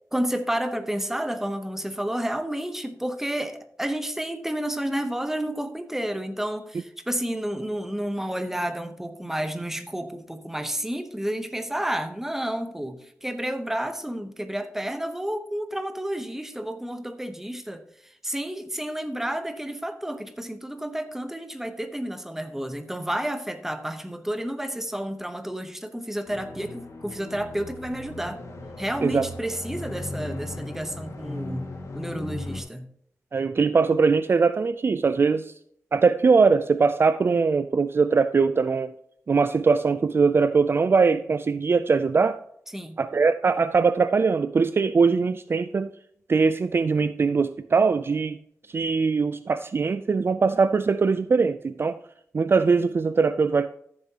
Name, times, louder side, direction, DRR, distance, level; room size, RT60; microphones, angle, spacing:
voice 1, 0.1-28.4 28.8-32.9 42.7-43.0, right 1 dB, 5° right, 9 dB, 0.8 m, -31 dB
sound 1, 26.2-32.6, left 2 dB, 65° left, 1.9 m, -37 dB
voice 2, 33.3-35.5 35.9-38.9 39.3-42.4 43.0-45.9 46.3-48.4 48.7-52.0 52.3-53.7, right 4 dB, 45° right, 12 dB, 0.3 m, -21 dB
13.5 x 7.3 x 2.9 m, 0.67 s
wide cardioid pair, 115°, 6 cm